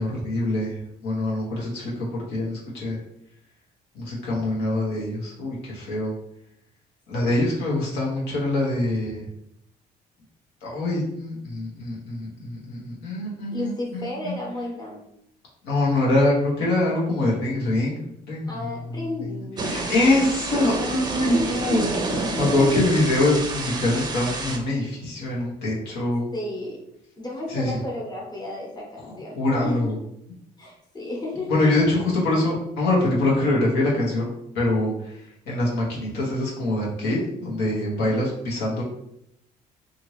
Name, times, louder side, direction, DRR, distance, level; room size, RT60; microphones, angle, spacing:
voice 1, 0.0-3.0 3.9-6.1 7.1-9.2 10.6-14.3 15.6-18.0 18.3-18.7 19.6-21.9 22.4-26.3 27.5-27.8 29.4-29.9 31.5-34.3 34.5-38.8, left 2 dB, 90° left, -4 dB, 1.1 m, -24 dB
voice 2, 13.5-15.0 18.5-20.9 21.3-23.0 26.3-26.8 27.2-29.9 30.6-31.9, left 2 dB, 25° left, -3 dB, 0.9 m, -33 dB
Thunder / Rain, 19.6-24.6, right 3 dB, 25° right, 0.5 m, -29 dB
2.8 x 2.6 x 3.1 m, 0.77 s
cardioid pair, 110°, 17 cm